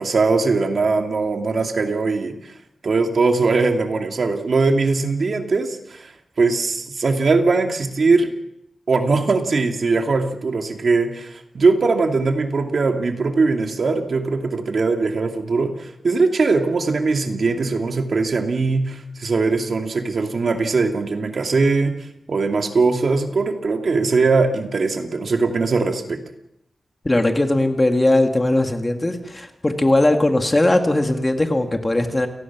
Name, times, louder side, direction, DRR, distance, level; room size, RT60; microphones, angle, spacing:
voice 1, 0.0-2.5 2.8-6.1 6.4-8.3 8.9-22.0 22.3-26.2, right 4 dB, 55° right, 4 dB, 2.5 m, -20 dB
voice 2, 27.0-32.3, left 1 dB, 20° left, 5 dB, 2.0 m, -19 dB
29.5 x 19.0 x 6.1 m, 0.79 s
wide cardioid pair, 155°, 0 cm